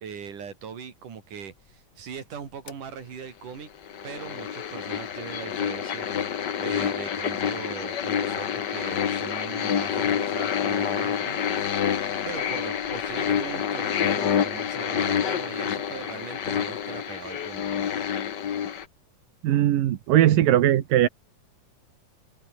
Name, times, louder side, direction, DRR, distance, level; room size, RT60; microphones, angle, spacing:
voice 1, 0.0-3.7 4.0-11.8 12.2-17.6, right 7 dB, 70° right, 4.6 m, -40 dB
sound 1, 2.7-2.8 3.9-18.9, left 8 dB, 55° left, 1.1 m, -28 dB
voice 2, 19.4-21.1, right 12 dB, 90° right, 3.1 m, -19 dB
omnidirectional pair, 3.8 m